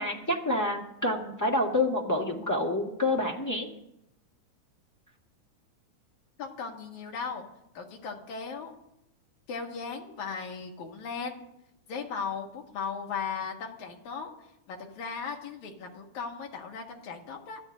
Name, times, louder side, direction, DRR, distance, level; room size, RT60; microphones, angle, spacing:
voice 1, 0.0-3.7, left 1 dB, 10° left, -2 dB, 0.9 m, -28 dB
voice 2, 6.4-7.4 7.7-8.7 9.5-11.4 11.9-14.3 14.7-17.6, left 5 dB, 75° left, 1 dB, 3.0 m, -37 dB
24.0 x 14.0 x 2.7 m, 0.81 s
omnidirectional pair, 3.5 m